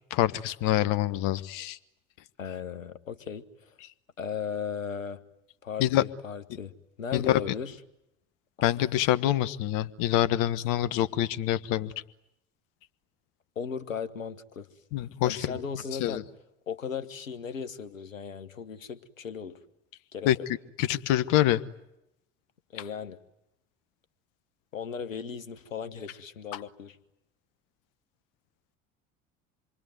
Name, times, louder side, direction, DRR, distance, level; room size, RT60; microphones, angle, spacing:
voice 1, 0.1-1.8 5.8-6.0 7.1-7.4 8.6-11.9 14.9-15.6 16.0-16.2 20.2-20.4 20.8-21.6 26.5-26.6, left 13 dB, 55° left, 15 dB, 1.3 m, -26 dB
voice 2, 2.4-3.4 4.2-5.2 5.6-7.8 13.5-14.7 15.2-16.2 16.7-19.6 20.1-20.3 22.7-23.2 24.7-27.0, left 6 dB, 80° left, 12 dB, 1.4 m, -36 dB
27.0 x 23.0 x 9.4 m, 0.86 s
figure-of-eight pair, 60°, 39 cm